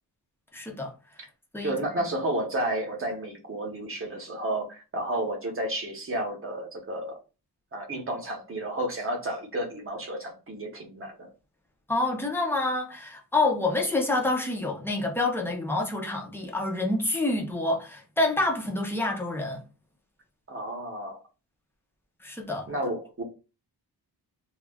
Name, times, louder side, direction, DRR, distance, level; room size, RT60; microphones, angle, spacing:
voice 1, 0.5-0.9 1.5-1.7 11.9-19.6 22.2-22.7, left 2 dB, 5° left, 0.4 m, -27 dB
voice 2, 1.6-7.2 7.7-11.3 20.5-21.2 22.7-23.2, right 1 dB, 30° right, 0.8 m, -31 dB
2.3 x 2.0 x 3.4 m
wide cardioid pair, 165°, 41 cm